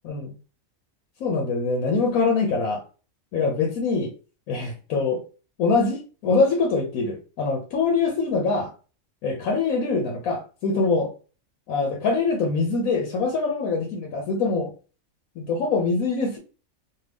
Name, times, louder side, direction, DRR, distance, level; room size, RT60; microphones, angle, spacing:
voice 1, 0.0-0.4 1.2-2.8 3.3-4.1 4.5-5.2 5.6-8.7 9.2-11.1 11.7-14.7 15.4-16.4, left 4 dB, 85° left, 1.1 m, -24 dB
2.7 x 2.5 x 3.3 m
omnidirectional pair, 1.4 m